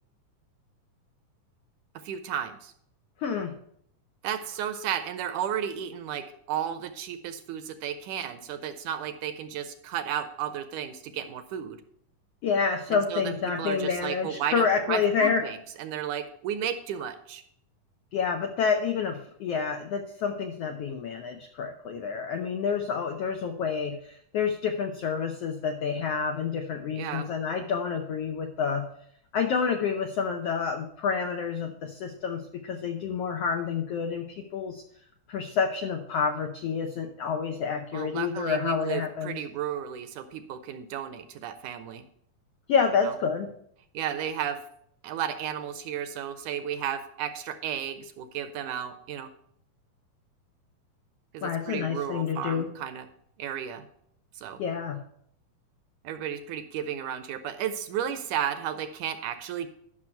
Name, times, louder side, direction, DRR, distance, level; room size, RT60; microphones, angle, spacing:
voice 1, 2.0-2.7 4.2-11.8 12.9-17.4 27.0-27.3 37.9-42.0 43.0-43.1 43.9-44.6 45.0-49.3 51.3-53.1 53.4-53.9 54.4-54.6 56.0-59.7, right 9 dB, 75° right, 10 dB, 2.0 m, -33 dB
voice 2, 3.2-3.5 12.4-15.4 18.1-28.9 29.3-34.8 35.3-39.4 42.7-43.5 51.4-52.7 54.6-55.0, left 6 dB, 85° left, 4 dB, 1.3 m, -28 dB
12.5 x 6.2 x 4.5 m, 0.68 s
omnidirectional pair, 3.8 m